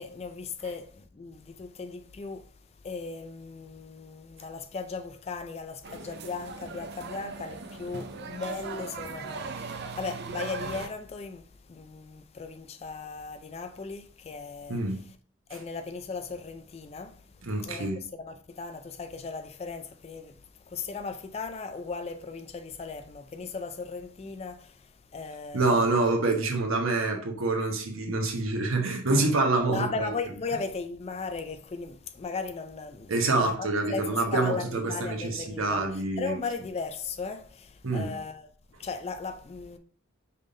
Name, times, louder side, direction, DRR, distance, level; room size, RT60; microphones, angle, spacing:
voice 1, 0.0-2.5 2.8-14.8 15.5-17.2 17.6-20.4 20.7-25.9 29.7-38.5 38.8-39.8, left 4 dB, 30° left, 0.3 m, -37 dB
sound 1, 5.8-10.9, right 4 dB, 55° right, 0.5 m, -39 dB
voice 2, 14.7-15.0 17.4-18.0 25.5-30.1 33.1-36.4 37.8-38.1, right 3 dB, 80° right, 1.0 m, -26 dB
5.3 x 3.6 x 2.6 m
head